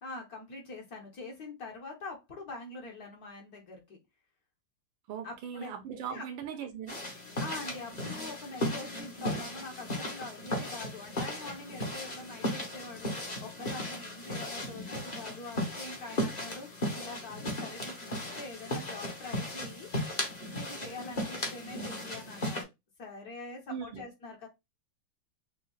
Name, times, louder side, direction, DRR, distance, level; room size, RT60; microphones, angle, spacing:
voice 1, 0.0-4.0 5.2-5.7 6.1-6.3 7.4-19.9 20.5-22.7 23.0-24.5, left 2 dB, 50° left, 1.4 m, -44 dB
voice 2, 5.1-7.0 23.7-24.0, right 8 dB, 75° right, 1.3 m, -39 dB
sound 1, 6.9-22.6, left 1 dB, 30° left, 0.8 m, -36 dB
6.2 x 2.3 x 2.3 m
omnidirectional pair, 2.3 m